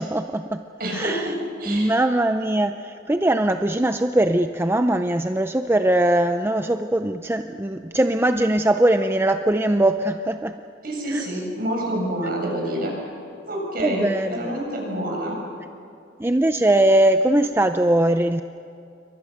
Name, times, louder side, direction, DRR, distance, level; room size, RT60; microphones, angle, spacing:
voice 1, 0.0-0.6 0.9-1.3 1.7-10.6 11.1-11.3 13.8-14.5 16.2-18.4, right 1 dB, 15° right, 8 dB, 0.5 m, -21 dB
voice 2, 0.8-1.9 10.8-12.9 13.5-15.4, right 1 dB, 55° right, 0 dB, 7.1 m, -27 dB
29.0 x 24.0 x 6.6 m, 2.5 s
head